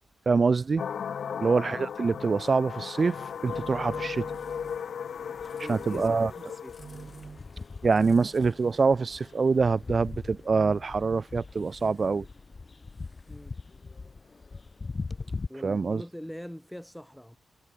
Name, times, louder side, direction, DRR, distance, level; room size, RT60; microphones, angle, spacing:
voice 1, 0.3-0.8 1.4-4.7 5.7-6.3 6.8-7.4 7.8-12.3 15.6-16.0, right 4 dB, 40° right, 0.9 m, -25 dB
sound 1, 0.8-9.7, left 7 dB, 70° left, 0.5 m, -37 dB
sound 2, 3.1-15.5, left 4 dB, 35° left, 2.4 m, -42 dB
voice 2, 5.5-6.7 13.3-13.6 15.5-17.4, equal, 5° left, 2.4 m, -42 dB
wide cardioid pair, 115°, 0 cm